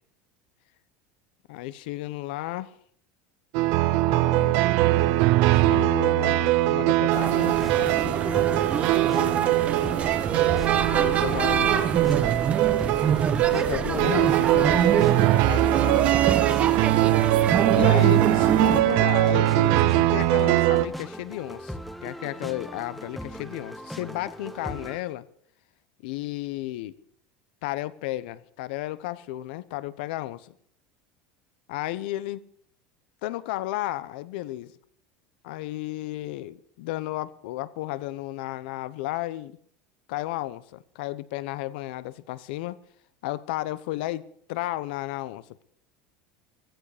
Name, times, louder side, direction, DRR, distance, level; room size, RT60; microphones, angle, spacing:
voice 1, 1.5-2.7 4.0-4.7 5.5-8.4 9.1-9.7 10.9-11.9 13.5-16.0 17.7-25.3 26.0-27.0 27.6-30.4 31.7-32.4 33.2-34.7 35.4-39.6 40.1-42.8 43.2-44.2 44.5-45.6, left 16 dB, 70° left, 0.9 m, -33 dB
sound 1, 3.5-20.9, right 16 dB, 55° right, 0.7 m, -22 dB
sound 2, 7.1-25.0, equal, ahead, 1.0 m, -39 dB
sound 3, 7.1-18.8, right 7 dB, 25° right, 0.9 m, -26 dB
15.5 x 15.5 x 5.0 m
cardioid pair, 160°, 5 cm